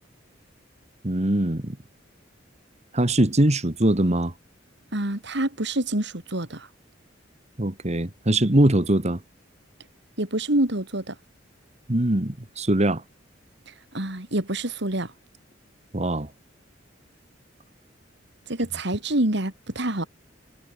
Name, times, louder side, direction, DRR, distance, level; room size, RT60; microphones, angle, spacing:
voice 1, 1.0-1.8 2.9-4.3 7.6-9.2 11.9-13.0 15.9-16.3, right 1 dB, 35° right, 1.9 m, -22 dB
voice 2, 4.9-6.7 10.2-11.2 13.9-15.1 18.5-20.1, right 1 dB, 65° right, 3.5 m, -26 dB
head